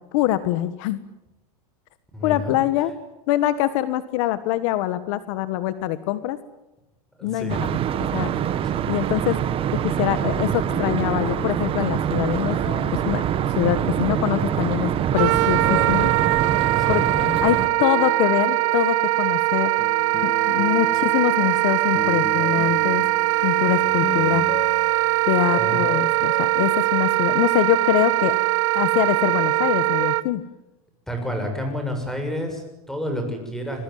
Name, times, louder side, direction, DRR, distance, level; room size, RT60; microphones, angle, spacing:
voice 1, 0.1-1.0 2.2-2.9 3.3-6.4 7.2-7.6 8.1-8.4 8.9-9.4 9.8-12.6 12.9-13.2 13.6-16.1 16.9-19.7 20.2-23.0 23.4-24.4 25.2-28.4 28.7-30.4, left 14 dB, 60° left, 13 dB, 1.4 m, -24 dB
voice 2, 2.1-2.5 7.2-7.6 12.9-13.0 16.7-17.1 25.6-25.8 31.1-33.8, equal, ahead, 4 dB, 6.9 m, -29 dB
sound 1, 7.5-17.7, right 10 dB, 30° right, 1.7 m, -25 dB
sound 2, 10.3-19.3 19.8-28.7 29.0-30.1, left 5 dB, 25° left, 2.2 m, -37 dB
Wind instrument woodwind instrument, 15.2-30.2, right 19 dB, 65° right, 1.1 m, -21 dB
26.0 x 21.0 x 9.4 m, 0.93 s
supercardioid pair, 145°, 19 cm